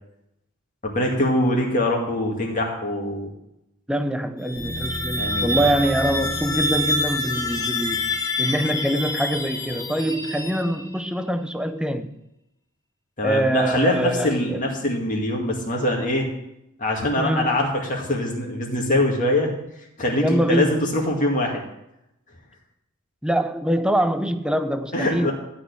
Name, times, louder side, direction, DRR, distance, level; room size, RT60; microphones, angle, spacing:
voice 1, 0.8-3.3 5.2-5.7 13.2-16.3 16.8-19.5 20.0-21.6 24.9-25.3, left 1 dB, 40° left, 2.2 m, -23 dB
voice 2, 3.9-8.0 8.4-12.1 13.2-14.6 17.2-17.5 20.2-20.7 23.2-25.3, right 1 dB, 5° right, 0.5 m, -24 dB
sound 1, 4.4-11.0, left 2 dB, 15° left, 1.0 m, -27 dB
sound 2, 4.6-9.1, equal, 20° right, 2.1 m, -36 dB
12.5 x 4.4 x 8.5 m
head